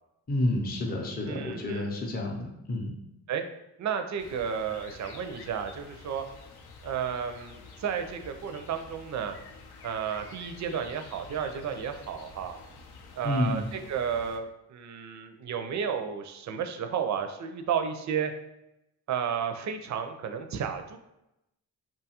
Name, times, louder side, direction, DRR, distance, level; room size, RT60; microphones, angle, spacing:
voice 1, 0.3-3.0 13.2-13.7, left 1 dB, 25° left, -1 dB, 0.5 m, -29 dB
voice 2, 1.3-1.9 3.3-3.4 3.8-6.2 6.8-9.4 9.8-12.6 13.1-18.3 19.1-21.0, right 7 dB, 50° right, 7 dB, 0.4 m, -32 dB
sound 1, 4.2-14.4, left 4 dB, 75° left, 0.5 m, -49 dB
2.7 x 2.3 x 2.8 m, 0.88 s
cardioid pair, 65°, 39 cm